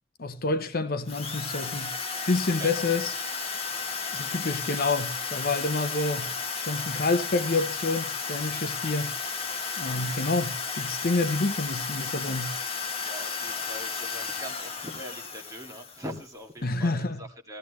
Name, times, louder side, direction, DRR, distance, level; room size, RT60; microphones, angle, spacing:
voice 1, 0.2-1.9 2.3-3.1 4.1-6.3 6.6-9.1 9.8-12.6 16.6-17.2, left 3 dB, 45° left, 0.8 m, -28 dB
Drill, 1.1-16.3, left 5 dB, 30° left, 1.6 m, -33 dB
voice 2, 2.6-3.0 3.7-4.3 13.0-17.6, equal, 15° right, 2.2 m, -42 dB
16.0 x 14.0 x 3.0 m
head